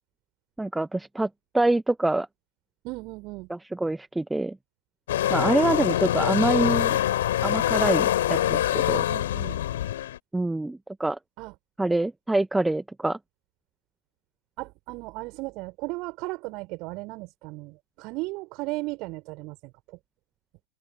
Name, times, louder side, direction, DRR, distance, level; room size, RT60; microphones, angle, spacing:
voice 1, 0.6-1.3 1.5-2.3 3.5-4.6 5.3-7.0 7.4-9.0 10.3-11.2 11.8-13.2, right 2 dB, 5° right, 1.8 m, -25 dB
voice 2, 2.8-3.5 5.4-6.1 8.9-9.6 11.4-11.5 14.6-19.7, right 24 dB, 40° right, 5.6 m, -36 dB
sound 1, 5.1-10.2, left 12 dB, 60° left, 7.8 m, -24 dB
figure-of-eight pair, 90°, 0 cm